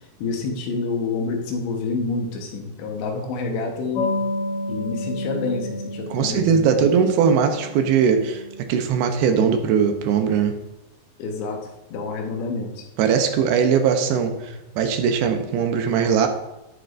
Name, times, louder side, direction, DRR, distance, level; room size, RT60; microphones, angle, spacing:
voice 1, 0.2-4.2 4.7-6.9 11.2-12.9 14.5-14.6, left 4 dB, 80° left, 1 dB, 3.4 m, -28 dB
sound 1, 3.9-10.1, left 1 dB, 55° left, 2.3 m, -31 dB
voice 2, 6.1-8.4 8.7-10.5 13.0-16.3, right 7 dB, 75° right, 5 dB, 2.5 m, -20 dB
11.5 x 9.7 x 2.6 m, 0.96 s
omnidirectional pair, 4.9 m